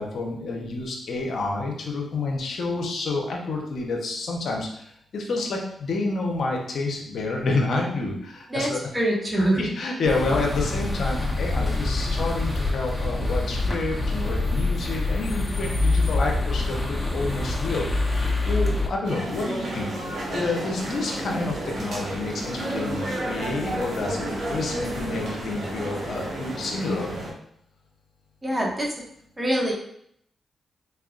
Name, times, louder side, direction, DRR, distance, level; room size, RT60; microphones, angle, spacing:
voice 1, 0.0-4.8 5.1-8.8 9.4-27.1, left 3 dB, 70° left, 0 dB, 0.8 m, -29 dB
voice 2, 8.5-9.6 28.4-28.9 29.4-29.7, right 1 dB, 25° right, -2 dB, 1.4 m, -24 dB
sound 1, 10.0-18.9, left 2 dB, 15° left, 1.1 m, -25 dB
sound 2, 19.0-27.3, right 1 dB, 70° right, 1.3 m, -31 dB
4.2 x 3.4 x 2.4 m, 0.69 s
supercardioid pair, 50°, 0 cm